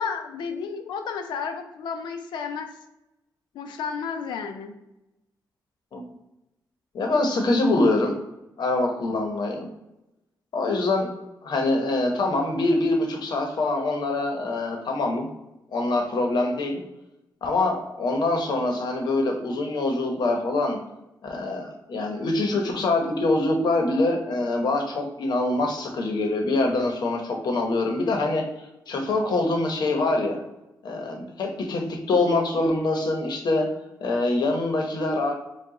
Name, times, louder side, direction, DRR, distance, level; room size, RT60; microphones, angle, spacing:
voice 1, 0.0-2.7 3.5-4.7, left 6 dB, 85° left, 6 dB, 0.5 m, -32 dB
voice 2, 6.9-8.1 8.6-9.7 10.5-11.1 11.4-15.3 15.7-16.8 17.4-20.8 21.2-28.4 28.9-30.4 30.8-33.7 34.0-35.3, left 2 dB, 70° left, 2 dB, 0.9 m, -24 dB
4.8 x 2.3 x 3.7 m, 0.92 s
cardioid pair, 85°, 8 cm